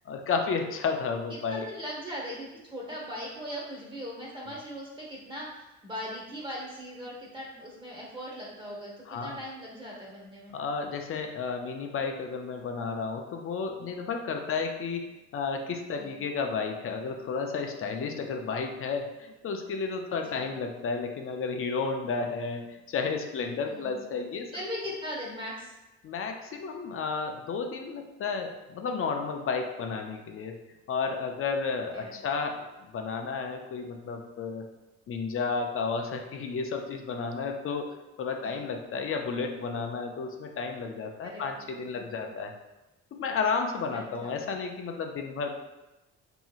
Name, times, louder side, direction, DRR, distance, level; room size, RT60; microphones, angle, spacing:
voice 1, 0.1-1.7 9.1-9.4 10.5-15.1 15.3-24.6 26.0-30.6 30.9-34.7 35.1-42.5 43.1-45.5, left 5 dB, 45° left, 4 dB, 0.4 m, -32 dB
voice 2, 1.3-10.5 15.9-16.2 20.3-20.5 23.6-24.0 24.5-25.7 31.9-32.1 38.4-38.6 41.2-41.6 41.9-42.4 43.9-44.3, equal, 15° right, -4 dB, 1.1 m, -39 dB
2.8 x 2.7 x 2.4 m, 1.0 s
cardioid pair, 90°, 30 cm